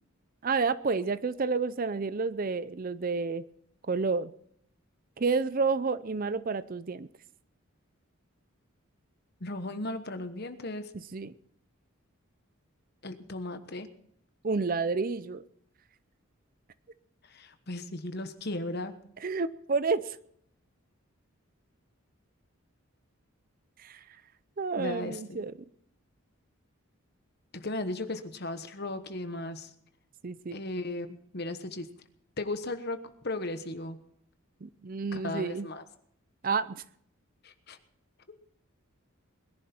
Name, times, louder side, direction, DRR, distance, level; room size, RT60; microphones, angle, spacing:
voice 1, 0.4-3.4 3.9-4.3 5.2-7.1 11.1-11.3 14.4-15.4 19.2-20.2 23.8-24.0 24.6-25.5 30.2-30.6 34.6-35.7 36.4-36.8, right 4 dB, 40° right, 15 dB, 0.5 m, -30 dB
voice 2, 9.4-10.9 13.0-13.9 17.2-18.9 24.8-25.4 27.5-29.7 30.5-31.9 32.4-34.0 35.1-35.8 37.4-37.8, left 2 dB, 45° left, 9 dB, 1.2 m, -36 dB
21.0 x 11.0 x 4.4 m, 0.68 s
head